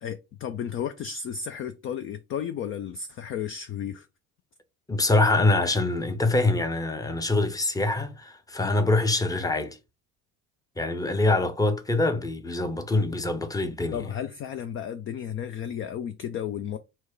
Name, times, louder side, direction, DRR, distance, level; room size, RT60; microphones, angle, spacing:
voice 1, 0.0-4.1 13.9-16.8, left 8 dB, 30° left, 0.4 m, -33 dB
voice 2, 4.9-9.8 10.8-14.1, left 2 dB, 10° left, 0.7 m, -24 dB
4.4 x 2.2 x 4.5 m
figure-of-eight pair, 60°, 46 cm